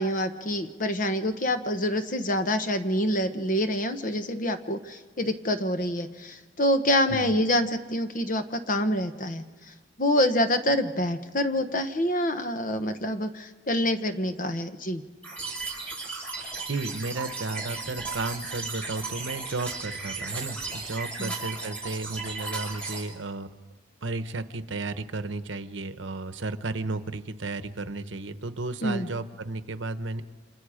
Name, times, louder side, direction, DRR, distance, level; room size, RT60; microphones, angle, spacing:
voice 1, 0.0-15.0 21.2-21.3 28.8-29.1, left 1 dB, 45° left, 8 dB, 1.1 m, -26 dB
sound 1, 15.2-23.0, right 3 dB, 5° left, 5.7 m, -35 dB
voice 2, 16.7-23.5 24.0-30.2, right 3 dB, 75° right, 10 dB, 1.0 m, -33 dB
30.0 x 27.0 x 5.1 m, 1.4 s
head